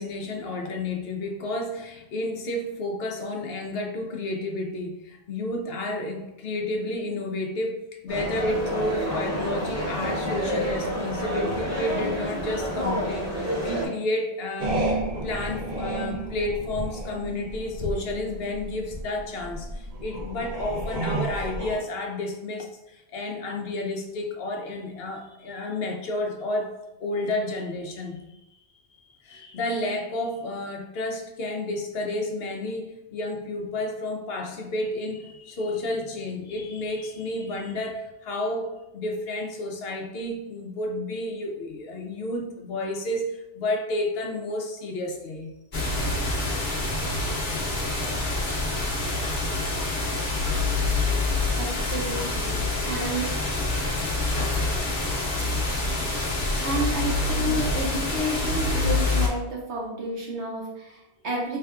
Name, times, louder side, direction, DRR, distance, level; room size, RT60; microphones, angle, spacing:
voice 1, 0.0-14.9 15.2-26.7 27.0-28.2 29.2-45.5 54.7-55.2, left 2 dB, 65° left, 3 dB, 0.8 m, -31 dB
sound 1, 8.1-13.9, equal, 15° right, 0.9 m, -29 dB
sound 2, 14.6-21.8, right 1 dB, 70° right, 1.1 m, -31 dB
sound 3, 45.7-59.3, left 2 dB, 45° left, 1.1 m, -26 dB
voice 2, 51.6-53.4 56.6-61.6, right 1 dB, 85° right, -3 dB, 1.4 m, -31 dB
4.5 x 3.4 x 2.3 m, 0.93 s
omnidirectional pair, 1.1 m